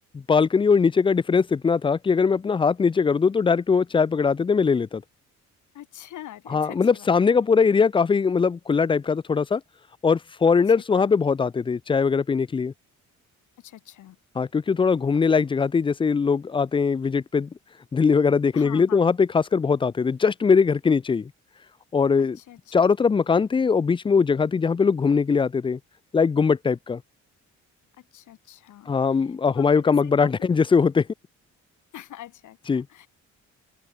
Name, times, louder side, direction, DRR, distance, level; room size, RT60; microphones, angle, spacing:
voice 1, 0.1-5.0 6.5-9.6 10.0-12.7 14.4-17.5 17.9-21.3 21.9-22.4 22.7-25.8 26.1-27.0 28.9-31.1 32.7-32.8, left 5 dB, 15° left, 0.4 m, -21 dB
voice 2, 5.7-7.4 10.6-11.2 13.6-14.2 18.5-19.0 22.2-22.9 28.0-30.3 31.9-33.1, left 13 dB, 80° left, 5.5 m, -44 dB
open air
cardioid pair, 90°, 30 cm